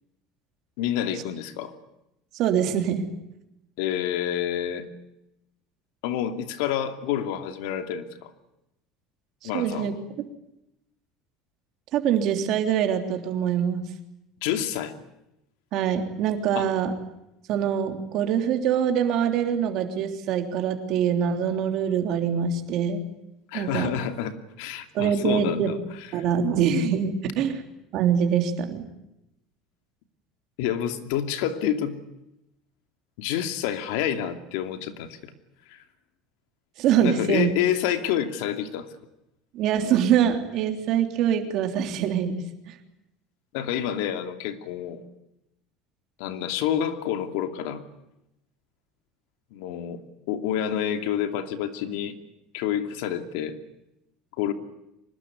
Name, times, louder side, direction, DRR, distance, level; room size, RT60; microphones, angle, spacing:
voice 1, 0.8-1.7 3.8-4.9 6.0-8.3 9.4-10.0 14.4-14.9 16.5-16.7 23.5-25.8 26.1-26.2 30.6-32.0 33.2-35.3 35.7-35.8 37.0-38.9 43.5-45.0 46.2-47.8 49.5-50.0 50.3-52.2 52.5-53.6 54.4-54.5, left 10 dB, 75° left, 8 dB, 2.7 m, -28 dB
voice 2, 2.3-3.0 9.4-9.9 10.2-10.3 11.9-13.8 15.7-16.9 17.5-23.0 23.5-23.9 24.9-25.7 26.1-27.6 27.9-28.8 36.8-37.5 39.5-42.8, right 8 dB, 45° right, 5 dB, 3.4 m, -24 dB
24.5 x 20.5 x 9.7 m, 0.87 s
cardioid pair, 175°, 0 cm